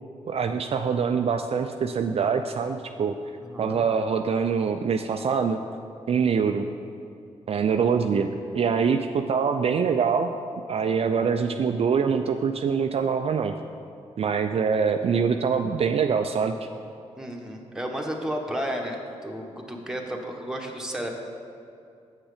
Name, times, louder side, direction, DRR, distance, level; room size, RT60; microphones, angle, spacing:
voice 1, 0.3-3.2 3.6-5.6 6.1-6.7 7.5-10.4 10.7-13.5 14.2-16.7, right 6 dB, 50° right, 6 dB, 0.4 m, -24 dB
voice 2, 3.4-3.8 17.2-21.1, equal, 5° right, 0 dB, 1.3 m, -32 dB
7.5 x 6.1 x 5.0 m, 2.5 s
supercardioid pair, 55°, 13 cm